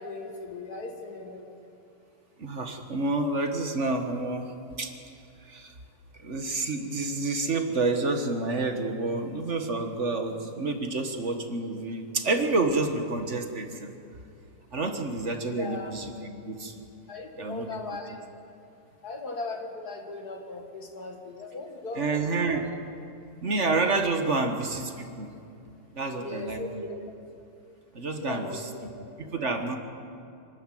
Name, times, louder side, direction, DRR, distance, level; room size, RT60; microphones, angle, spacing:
voice 1, 0.0-1.4 15.6-15.9 17.1-18.2 19.0-22.6 26.1-27.1 28.2-28.9, left 3 dB, 70° left, 3 dB, 2.6 m, -38 dB
voice 2, 2.4-4.5 4.8-4.9 5.5-5.7 6.2-13.9 14.7-16.8 17.4-18.0 21.9-22.7 23.4-25.3 25.9-26.9 27.9-28.7 29.2-29.8, right 3 dB, 45° right, 5 dB, 1.7 m, -29 dB
26.0 x 12.5 x 9.2 m, 2.6 s
omnidirectional pair, 1.7 m